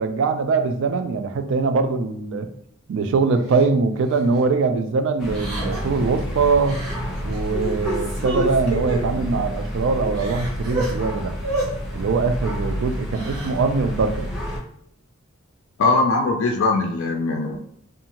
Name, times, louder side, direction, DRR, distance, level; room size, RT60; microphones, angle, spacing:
voice 1, 0.0-2.5 2.9-6.8 7.2-11.4 11.9-14.3, right 4 dB, 60° right, 8 dB, 0.3 m, -22 dB
Crying sobbing, 3.5-3.7 4.1-4.4 5.3-6.0 6.7-7.0 7.3-9.0 9.6-9.7 10.0-10.9 11.4-11.7 13.0-13.6, right 1 dB, 90° right, 0.8 m, -29 dB
sound 1, 5.2-14.6, equal, 5° right, 0.7 m, -29 dB
voice 2, 15.8-17.6, left 3 dB, 65° left, 3 dB, 0.3 m, -20 dB
2.6 x 2.3 x 2.8 m, 0.68 s
head